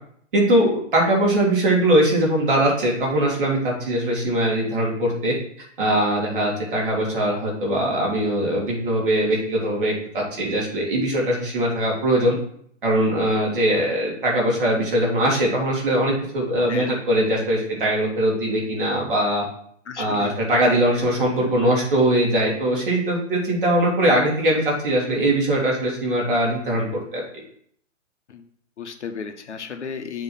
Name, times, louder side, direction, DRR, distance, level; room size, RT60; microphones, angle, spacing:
voice 1, 0.3-5.4 5.8-12.3 12.8-19.4 20.0-27.2, right 1 dB, 45° right, -2 dB, 2.1 m, -21 dB
voice 2, 16.7-17.0 19.9-20.3 28.3-28.4 28.8-30.2, left 6 dB, 65° left, 6 dB, 0.9 m, -33 dB
7.3 x 3.1 x 5.4 m, 0.64 s
hypercardioid pair, 180°, 38 cm